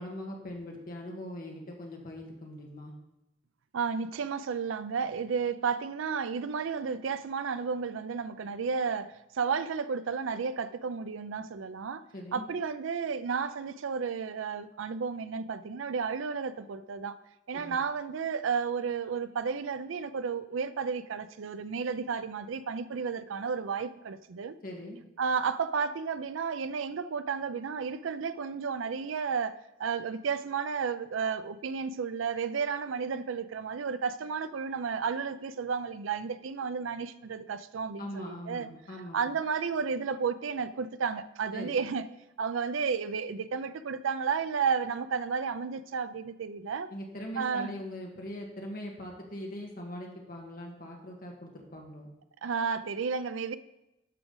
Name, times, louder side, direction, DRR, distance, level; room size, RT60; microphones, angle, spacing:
voice 1, 0.0-2.9 12.1-12.4 17.5-17.8 24.6-25.0 38.0-39.2 41.5-41.8 46.9-52.1, equal, 50° left, 1.7 m, -41 dB
voice 2, 3.7-12.0 12.3-17.2 17.5-24.6 25.2-29.5 29.8-38.7 39.1-42.1 42.4-46.9 47.4-47.8 52.4-53.6, right 5 dB, 85° right, 0.5 m, -32 dB
12.0 x 4.9 x 3.9 m
head